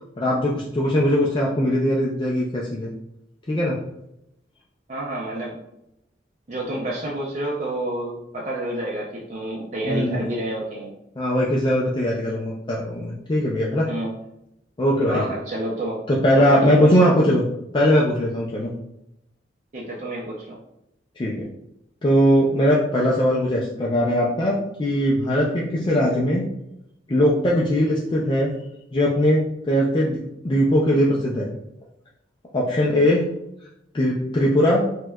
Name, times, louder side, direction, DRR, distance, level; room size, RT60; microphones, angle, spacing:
voice 1, 0.2-2.9 3.5-3.8 9.8-10.2 11.2-13.9 14.8-15.2 16.1-17.4 17.7-18.7 21.2-21.3 22.0-26.4 27.1-28.5 28.9-30.2 30.4-31.5 32.5-33.2 33.9-34.8, equal, 25° left, -4 dB, 0.4 m, -20 dB
voice 2, 4.9-5.6 6.5-10.9 13.9-14.1 15.1-16.0 16.4-17.1 19.7-20.6, right 1 dB, 40° right, -4 dB, 0.5 m, -29 dB
4.3 x 2.2 x 2.3 m, 0.83 s
head